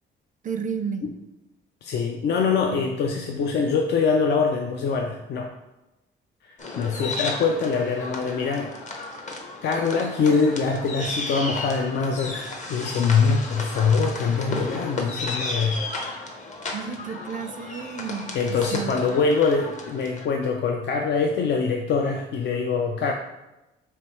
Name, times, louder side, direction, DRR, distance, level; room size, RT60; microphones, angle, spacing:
voice 1, 0.4-1.1 16.7-19.0, right 6 dB, 40° right, 8 dB, 0.4 m, -32 dB
voice 2, 1.8-5.5 6.4-8.7 9.6-15.8 18.3-23.1, left 5 dB, 60° left, 2 dB, 0.4 m, -24 dB
sound 1, 6.6-20.3, left 2 dB, 35° left, 0.7 m, -34 dB
3.3 x 3.1 x 4.2 m, 0.99 s
cardioid pair, 90°, 20 cm